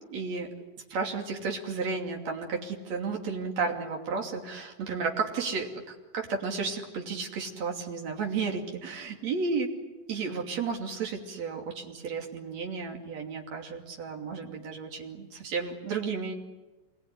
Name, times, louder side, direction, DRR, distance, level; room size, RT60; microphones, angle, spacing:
voice 1, 0.1-0.5 0.9-5.7 6.1-9.7 10.1-16.4, right 5 dB, 55° right, 1 dB, 3.9 m, -33 dB
27.0 x 21.5 x 9.7 m, 1.2 s
omnidirectional pair, 3.8 m